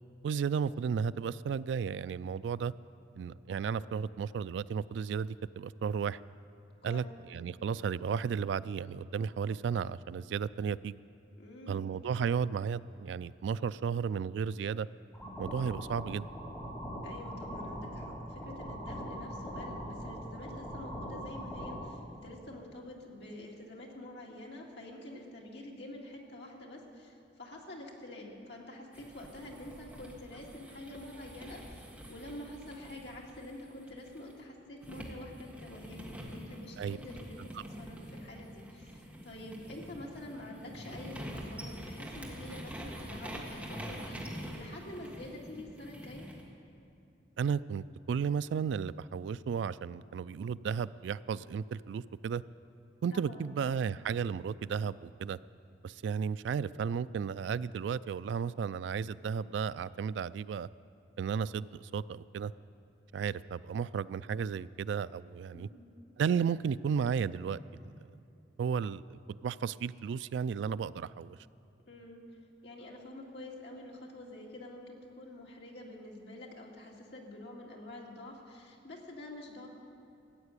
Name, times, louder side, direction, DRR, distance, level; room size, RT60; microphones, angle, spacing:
voice 1, 0.2-2.7 3.1-6.2 6.8-11.0 11.7-14.9 15.4-16.3 36.8-37.0 47.4-52.4 53.0-55.4 55.8-60.7 61.2-62.5 63.1-65.7 66.2-67.9 68.6-71.4, right 6 dB, 80° right, 17 dB, 0.3 m, -34 dB
voice 2, 6.8-7.1 11.4-11.9 17.0-46.3 53.1-53.5 65.5-65.9 71.9-72.2 72.6-79.7, left 1 dB, 70° left, -1 dB, 2.2 m, -47 dB
sound 1, 15.1-21.8, equal, 10° left, 3.4 m, -41 dB
sound 2, 28.9-34.3 34.8-46.4, equal, 10° right, 1.5 m, -46 dB
14.5 x 8.9 x 8.3 m, 2.6 s
head